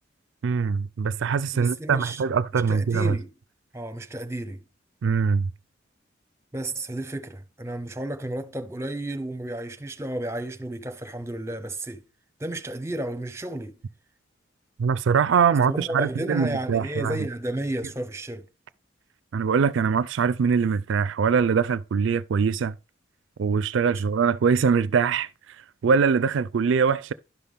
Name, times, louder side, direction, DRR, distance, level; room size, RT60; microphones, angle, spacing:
voice 1, 0.4-3.2 5.0-5.5 14.8-17.2 19.3-22.7 23.4-25.6 25.8-27.1, right 6 dB, 65° right, 0.4 m, -23 dB
voice 2, 1.5-2.2 2.7-3.3 3.7-4.6 6.5-12.0 12.4-13.8 15.7-18.5, right 1 dB, 15° right, 0.8 m, -32 dB
11.5 x 5.7 x 3.5 m
head